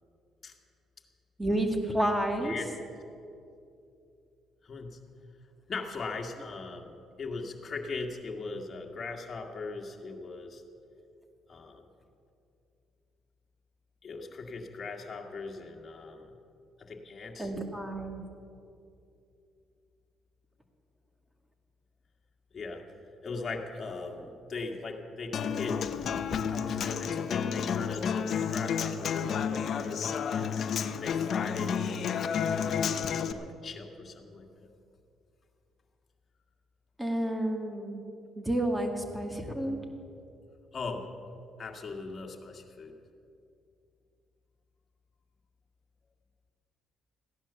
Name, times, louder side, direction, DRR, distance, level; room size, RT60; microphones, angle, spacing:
voice 1, 1.4-2.5 17.4-18.2 37.0-38.0 38.4-39.8, right 1 dB, 10° right, 4 dB, 2.1 m, -30 dB
voice 2, 4.6-5.0 5.7-10.6 11.5-11.8 14.0-16.4 16.8-17.5 22.5-22.8 23.2-30.5 30.9-32.1 32.4-34.7 40.7-41.1 41.6-42.9, left 3 dB, 40° left, 2 dB, 1.9 m, -40 dB
Human voice / Acoustic guitar, 25.3-33.3, left 7 dB, 60° left, 0.8 m, -31 dB
15.5 x 10.5 x 7.0 m, 2.6 s
cardioid pair, 85°, 0 cm